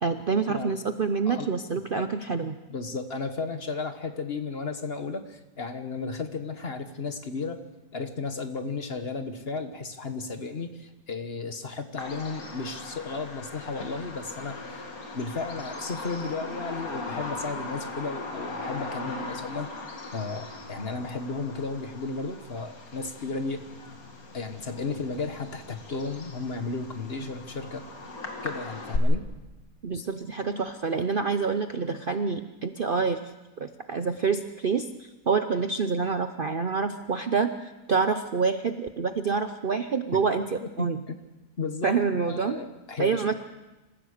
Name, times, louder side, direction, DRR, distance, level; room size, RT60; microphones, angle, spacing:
voice 1, 0.0-2.6 29.8-33.2 33.6-34.9 35.3-37.5 37.9-41.0 41.8-42.6 43.0-43.3, right 5 dB, 45° right, 8 dB, 0.7 m, -27 dB
voice 2, 2.7-7.6 7.9-14.9 15.1-19.7 20.1-23.6 24.3-27.8 28.4-29.2 40.8-41.2 41.6-42.0 42.3-43.3, left 4 dB, 40° left, 7 dB, 1.5 m, -34 dB
Bird vocalization bird call bird song, 12.0-29.0, left 3 dB, 65° left, 2.6 m, -39 dB
27.0 x 15.0 x 6.6 m, 1.1 s
omnidirectional pair, 1.7 m